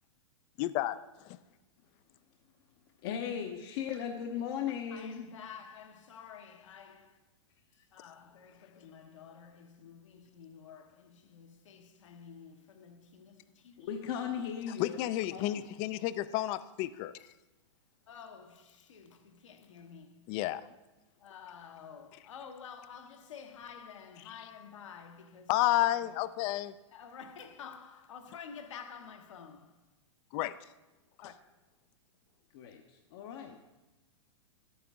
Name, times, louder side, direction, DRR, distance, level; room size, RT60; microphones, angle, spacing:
voice 1, 0.6-1.4 14.8-17.3 20.3-20.7 22.1-22.2 24.2-24.5 25.5-26.7 30.3-30.6 31.2-31.3, left 15 dB, 35° left, 0.4 m, -32 dB
voice 2, 3.0-5.3 13.8-15.7 32.5-33.7, left 8 dB, 50° left, 0.8 m, -37 dB
voice 3, 4.9-7.2 7.9-13.9 18.1-20.1 21.2-25.8 26.9-29.7 31.2-31.3, left 7 dB, 75° left, 1.1 m, -50 dB
10.0 x 8.8 x 3.5 m
hypercardioid pair, 130°, 16 cm